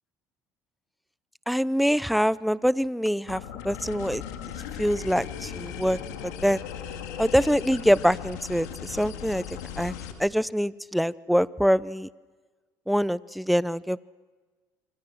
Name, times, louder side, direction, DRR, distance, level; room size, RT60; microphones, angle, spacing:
voice 1, 1.5-4.2 4.8-6.6 7.2-9.4 9.8-9.9 10.2-12.1 12.9-14.0, equal, ahead, 19 dB, 0.7 m, -24 dB
sound 1, 3.3-10.1, left 9 dB, 85° left, 2.8 m, -37 dB
28.5 x 25.5 x 6.3 m, 1.3 s
supercardioid pair, 75°, 9 cm